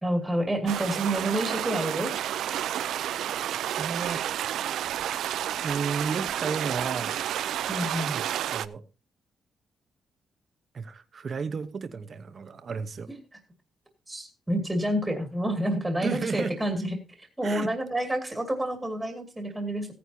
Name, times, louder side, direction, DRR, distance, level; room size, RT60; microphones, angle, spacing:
voice 1, 0.0-2.1 7.7-8.2 13.1-13.2 14.1-17.0 17.4-19.9, right 1 dB, 5° right, 4 dB, 2.3 m, -28 dB
sound 1, 0.7-8.7, right 11 dB, 90° right, 0.5 m, -30 dB
voice 2, 3.8-4.3 5.6-7.2 8.1-8.2 8.5-8.8 10.7-13.1 16.0-16.8 17.4-17.7, right 5 dB, 35° right, 11 dB, 1.0 m, -33 dB
16.5 x 9.4 x 2.8 m, 0.29 s
wide cardioid pair, 170°, 0 cm